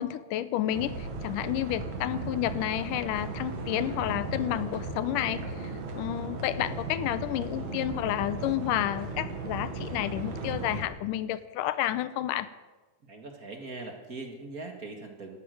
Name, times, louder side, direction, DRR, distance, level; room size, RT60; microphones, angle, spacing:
voice 1, 0.0-12.5, left 13 dB, 80° left, 15 dB, 2.2 m, -30 dB
sound 1, 0.7-10.8, right 3 dB, 60° right, 3.2 m, -36 dB
voice 2, 13.0-15.4, right 3 dB, 40° right, 4 dB, 1.4 m, -41 dB
13.0 x 11.5 x 9.1 m, 1.2 s
omnidirectional pair, 3.8 m